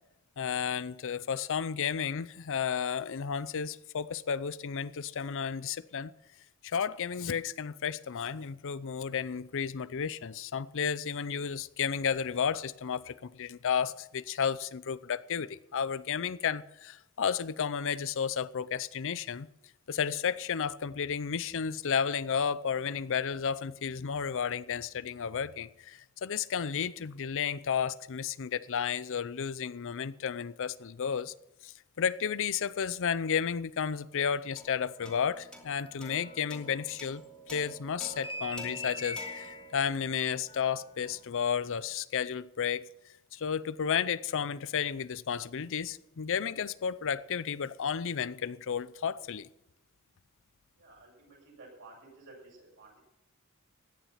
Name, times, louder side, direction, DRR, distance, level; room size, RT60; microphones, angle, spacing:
voice 1, 0.4-6.1 6.6-19.5 19.9-31.3 31.6-37.2 37.5-42.9 43.3-49.5, left 7 dB, 60° left, 0.5 m, -32 dB
sound 1, 34.6-41.2, right 1 dB, 5° left, 2.6 m, -50 dB
sound 2, 35.0-37.4 37.7-41.3 41.6-41.9, left 2 dB, 25° left, 1.2 m, -44 dB
voice 2, 50.8-53.0, right 2 dB, 60° right, 7.3 m, -53 dB
16.0 x 10.0 x 5.7 m
head